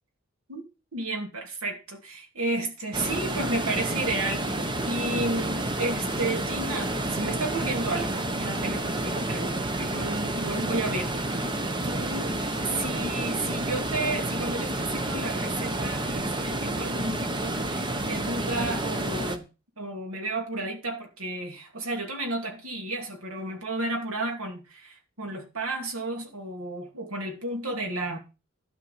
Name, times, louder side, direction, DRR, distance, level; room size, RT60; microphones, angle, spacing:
voice 1, 0.9-11.5 11.8-12.3 12.6-19.5 19.8-28.2, right 2 dB, 85° right, 2.6 m, -32 dB
sound 1, 2.9-19.4, right 1 dB, 20° right, 1.1 m, -30 dB
13.0 x 4.5 x 8.6 m
head